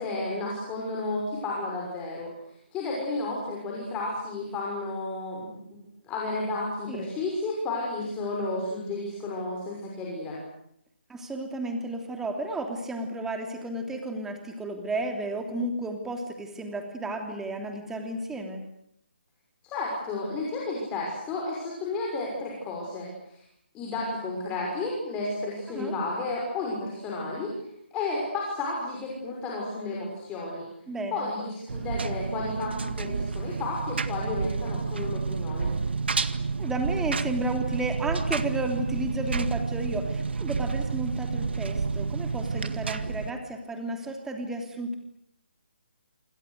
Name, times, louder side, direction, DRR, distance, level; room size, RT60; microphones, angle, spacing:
voice 1, 0.0-2.3 2.7-10.4 19.6-23.4 23.7-27.6 27.9-30.7 31.1-35.8, left 2 dB, 15° left, -2 dB, 6.2 m, -32 dB
voice 2, 11.1-18.6 25.7-25.9 30.9-31.3 36.6-44.9, right 2 dB, 5° right, 4 dB, 3.0 m, -32 dB
Engine, 31.7-43.3, right 4 dB, 70° right, 2.0 m, -30 dB
28.0 x 27.0 x 6.7 m, 0.74 s
figure-of-eight pair, 150°, 6 cm